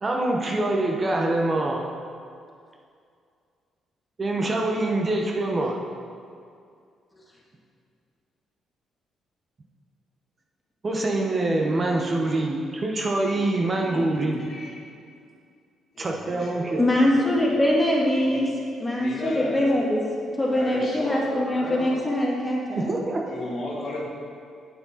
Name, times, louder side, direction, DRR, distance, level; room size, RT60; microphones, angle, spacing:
voice 1, 0.0-1.8 4.2-5.8 10.8-14.4 16.0-16.9 22.7-23.2, right 2 dB, 35° right, 0 dB, 1.0 m, -25 dB
voice 2, 13.9-14.8 15.9-17.7 18.2-18.6 18.9-19.7 20.5-22.1 23.3-24.1, left 2 dB, 55° left, -3 dB, 2.0 m, -35 dB
voice 3, 16.8-18.5 18.8-22.9, left 1 dB, 15° left, -4 dB, 2.3 m, -23 dB
9.4 x 7.4 x 4.1 m, 2.3 s
cardioid pair, 90°, 0 cm